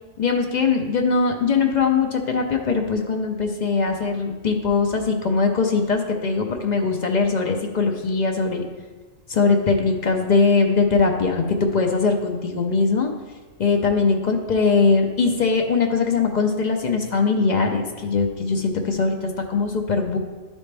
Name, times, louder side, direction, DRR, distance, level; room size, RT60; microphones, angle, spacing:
voice 1, 0.2-8.6 9.3-13.1 13.6-20.2, left 4 dB, 45° left, 3 dB, 0.6 m, -21 dB
11.0 x 4.2 x 3.3 m, 1.3 s
omnidirectional pair, 1.3 m